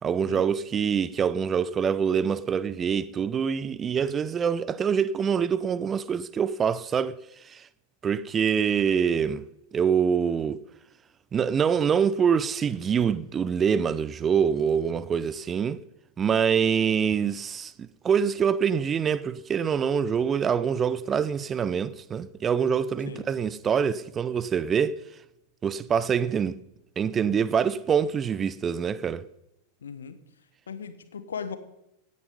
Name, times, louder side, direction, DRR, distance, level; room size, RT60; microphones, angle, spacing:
voice 1, 0.0-7.2 7.4-7.7 8.0-9.4 9.7-10.6 11.3-15.8 16.2-25.0 25.6-26.6 27.0-29.2, right 7 dB, 20° right, 0.7 m, -25 dB
voice 2, 29.8-30.2 30.7-31.6, left 6 dB, 70° left, 1.4 m, -37 dB
16.5 x 9.6 x 5.4 m
figure-of-eight pair, 90°, 0 cm